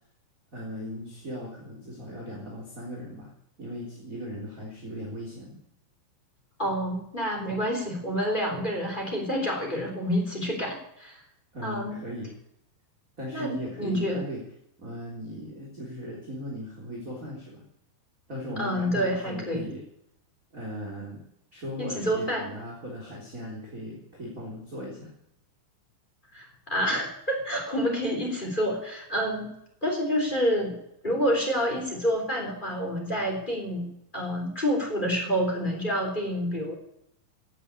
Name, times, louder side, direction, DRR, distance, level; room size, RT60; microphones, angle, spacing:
voice 1, 0.5-3.3 3.6-5.6 7.4-7.6 11.5-12.3 13.2-14.4 14.8-17.6 18.3-19.8 20.5-21.2 21.5-25.1, equal, 20° right, -4 dB, 3.2 m, -38 dB
voice 2, 6.6-11.2 11.6-12.0 13.3-14.2 18.6-19.7 21.8-22.5 26.3-29.5 29.8-30.7 31.0-36.7, equal, 10° left, 0 dB, 2.7 m, -28 dB
16.5 x 8.6 x 8.4 m, 0.77 s
omnidirectional pair, 6.0 m